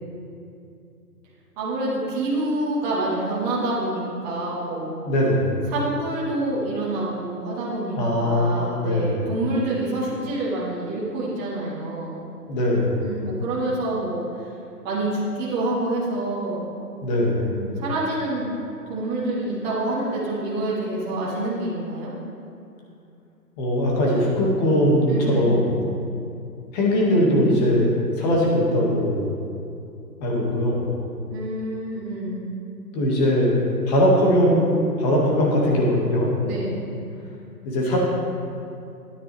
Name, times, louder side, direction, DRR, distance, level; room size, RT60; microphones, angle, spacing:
voice 1, 1.6-5.0 5.7-12.2 13.0-14.2 14.8-16.7 17.4-18.5 18.9-22.1 25.1-25.6 31.3-32.5 36.4-36.9, right 2 dB, 25° right, -7 dB, 1.8 m, -27 dB
voice 2, 5.0-5.5 8.0-9.2 12.5-13.0 17.0-17.5 23.6-25.7 26.7-29.3 30.2-30.9 32.9-33.6 33.9-34.7 35.0-36.4 37.6-38.0, equal, 25° left, -3 dB, 1.9 m, -20 dB
11.5 x 9.9 x 3.3 m, 2.6 s
hypercardioid pair, 150°, 49 cm